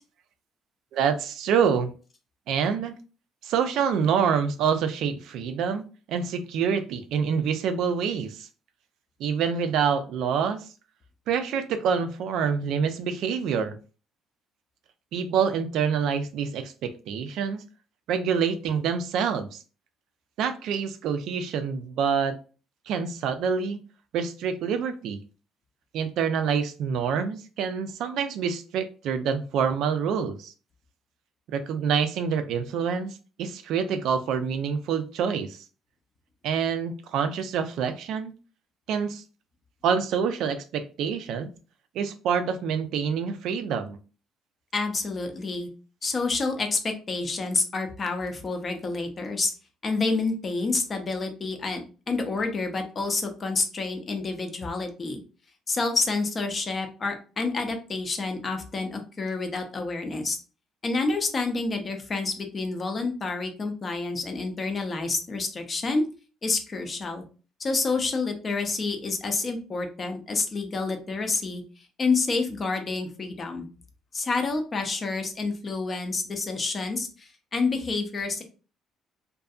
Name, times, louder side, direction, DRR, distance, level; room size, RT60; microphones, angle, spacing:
voice 1, 0.9-1.9 2.5-2.9 3.4-8.5 9.2-10.7 11.3-13.8 15.1-17.6 18.1-19.6 20.4-22.4 22.9-23.8 24.1-25.2 25.9-30.5 31.5-35.6 36.4-38.3 38.9-39.2 39.8-41.5 41.9-44.0, right 7 dB, 65° right, 9 dB, 0.4 m, -26 dB
voice 2, 44.7-45.7 46.0-49.5 49.8-55.2 55.7-60.4 60.8-66.0 66.4-67.2 67.6-71.6 72.0-73.7 74.1-78.4, left 3 dB, 30° left, 5 dB, 0.5 m, -28 dB
2.6 x 2.4 x 2.3 m, 0.35 s
cardioid pair, 150°, 0 cm